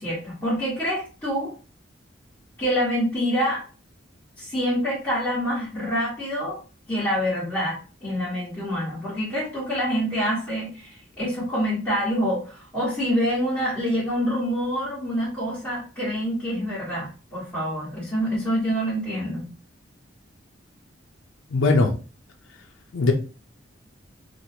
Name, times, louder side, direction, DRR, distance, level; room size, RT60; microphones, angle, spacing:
voice 1, 0.0-1.5 2.6-3.6 4.4-6.6 6.9-19.5, equal, 10° left, -11 dB, 1.6 m, -26 dB
voice 2, 21.5-21.9 22.9-23.1, left 3 dB, 80° left, 3 dB, 0.5 m, -19 dB
3.0 x 2.4 x 2.7 m, 0.35 s
head